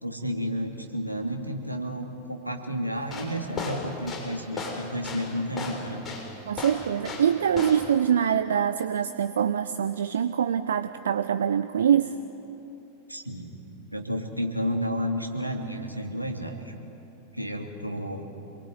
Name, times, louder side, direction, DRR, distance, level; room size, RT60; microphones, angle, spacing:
voice 1, 0.0-6.1 13.1-13.6 13.9-16.7 17.3-18.3, equal, 90° right, 3 dB, 2.8 m, -31 dB
sound 1, 3.0-7.3 7.6-7.9, left 3 dB, 20° left, 6.8 m, -34 dB
voice 2, 6.5-12.1, right 8 dB, 65° right, 12 dB, 0.7 m, -24 dB
27.5 x 22.0 x 9.5 m, 2.9 s
figure-of-eight pair, 90°, 0 cm